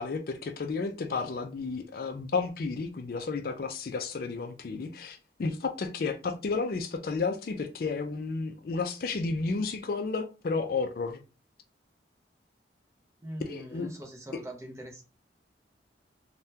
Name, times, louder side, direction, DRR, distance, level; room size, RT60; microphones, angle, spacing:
voice 1, 0.0-11.2 13.5-13.9, left 4 dB, 50° left, 0.4 m, -32 dB
voice 2, 13.2-15.0, right 1 dB, 15° right, 0.6 m, -42 dB
3.5 x 2.2 x 2.7 m
head